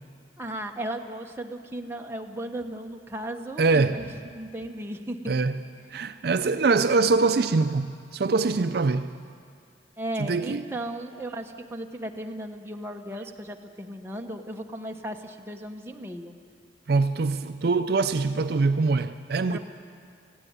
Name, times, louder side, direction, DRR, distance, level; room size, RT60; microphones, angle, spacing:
voice 1, 0.4-5.3 10.0-16.4 19.5-19.6, right 1 dB, 15° right, 1.0 m, -36 dB
voice 2, 3.6-4.1 5.3-5.6 5.9-9.1 10.2-10.7 16.9-19.6, right 3 dB, 60° right, 0.5 m, -23 dB
17.5 x 15.5 x 9.5 m
head